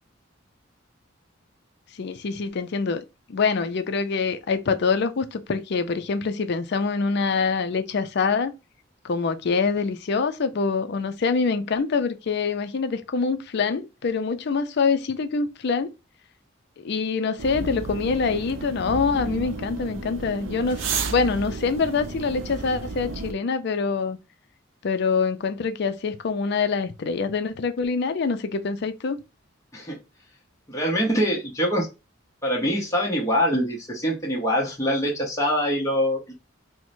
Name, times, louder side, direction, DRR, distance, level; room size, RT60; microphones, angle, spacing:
voice 1, 2.0-3.0 3.3-8.5 9.0-15.9 16.8-24.2 24.8-29.2, left 4 dB, 55° left, 0.4 m, -25 dB
sound 1, 17.4-23.3, right 4 dB, 75° right, 0.5 m, -32 dB
voice 2, 30.7-31.9 32.4-36.3, equal, 15° left, 0.8 m, -24 dB
4.5 x 2.1 x 2.5 m
head